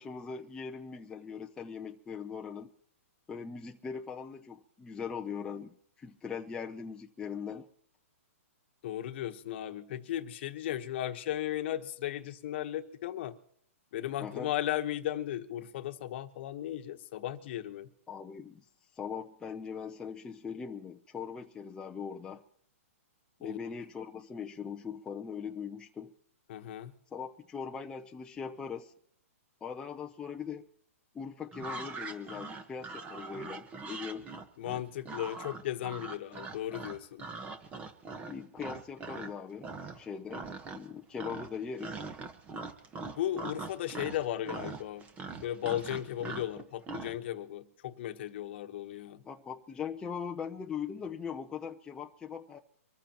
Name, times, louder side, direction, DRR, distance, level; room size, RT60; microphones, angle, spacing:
voice 1, 0.0-2.7 3.3-7.7 14.2-14.5 18.1-18.6 19.0-22.4 23.4-26.1 27.1-28.9 29.6-30.7 31.1-34.3 38.2-40.5 40.7-42.0 49.2-52.6, left 6 dB, 10° left, 0.7 m, -40 dB
voice 2, 8.8-13.4 13.9-17.9 23.4-23.6 26.5-26.9 34.6-37.2 43.2-45.1 45.4-49.2, left 12 dB, 50° left, 1.2 m, -36 dB
sound 1, 31.5-39.3 39.6-40.0 40.3-40.9 41.2-47.2, right 4 dB, 15° right, 1.2 m, -42 dB
25.0 x 14.5 x 3.0 m
hypercardioid pair, 145°, 8 cm